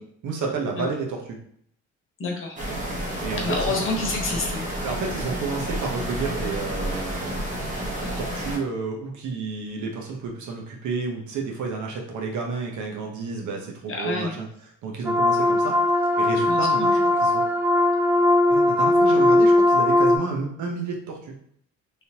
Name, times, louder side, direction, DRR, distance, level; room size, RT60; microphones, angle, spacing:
voice 1, 0.2-1.4 3.2-3.8 4.8-7.4 8.2-14.5 14.8-15.8 16.2-17.4 18.5-21.3, right 4 dB, 75° right, 0 dB, 0.9 m, -31 dB
voice 2, 2.2-2.6 3.4-4.7 13.9-14.3 16.5-16.9, left 3 dB, 45° left, 0 dB, 1.1 m, -28 dB
sound 1, 2.6-8.6, right 1 dB, 25° right, 1.1 m, -30 dB
sound 2, 15.1-20.2, left 1 dB, 5° right, 0.4 m, -19 dB
3.4 x 2.8 x 2.8 m, 0.67 s
cardioid pair, 90°, 30 cm